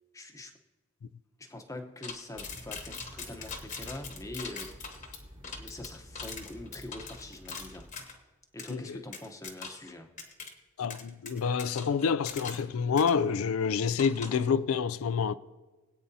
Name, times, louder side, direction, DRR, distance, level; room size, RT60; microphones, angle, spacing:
voice 1, 0.1-0.5 1.4-4.8 5.6-7.9 8.5-10.1, left 1 dB, 15° left, 0.9 m, -43 dB
sound 1, 2.0-8.2 8.6-8.7 9.1-9.9 10.2-10.5 10.9-12.7 13.0-13.1 14.0-14.5, left 5 dB, 35° left, 1.2 m, -42 dB
sound 2, 2.3-7.9, equal, 25° right, 1.1 m, -50 dB
voice 2, 8.7-9.0 10.8-15.3, left 6 dB, 70° left, 0.4 m, -28 dB
24.0 x 8.7 x 2.7 m
head